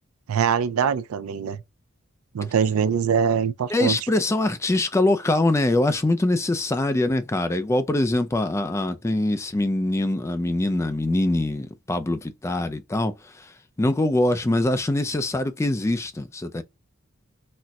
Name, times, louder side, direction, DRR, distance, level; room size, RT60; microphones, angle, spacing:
voice 1, 0.3-1.6 2.3-4.0, right 7 dB, 90° right, 0.4 m, -23 dB
voice 2, 3.7-16.6, left 2 dB, 15° left, 0.3 m, -23 dB
4.1 x 2.0 x 2.3 m
head